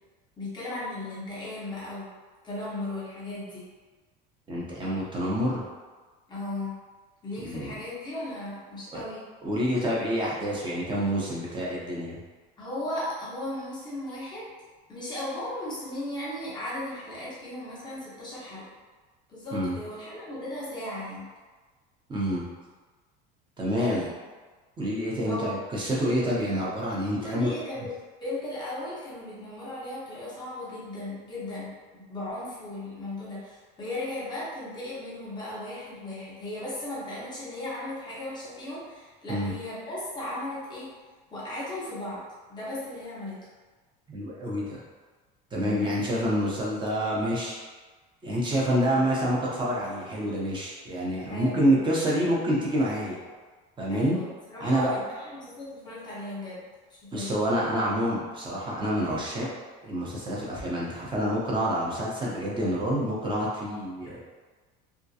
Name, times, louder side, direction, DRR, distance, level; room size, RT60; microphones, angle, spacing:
voice 1, 0.4-2.1 2.4-3.6 6.3-6.8 7.2-9.2 12.6-14.5 14.9-18.6 19.3-21.3 23.7-24.2 25.2-25.6 27.2-27.9 28.2-40.9 41.3-42.2 42.5-43.4 45.6-45.9 48.7-49.0 51.3-51.8 53.9-56.6 56.9-57.3, left 1 dB, 20° left, -7 dB, 0.9 m, -36 dB
voice 2, 4.5-5.6 7.4-7.8 8.9-9.0 9.4-12.2 19.5-19.7 22.1-22.4 23.6-24.0 24.8-27.5 39.3-39.5 44.1-44.8 45.5-47.6 48.2-53.2 53.8-54.2 54.6-54.9 57.1-59.5 59.8-64.2, equal, 20° right, -5 dB, 0.7 m, -27 dB
2.4 x 2.2 x 2.7 m, 1.3 s
cardioid pair, 125°, 21 cm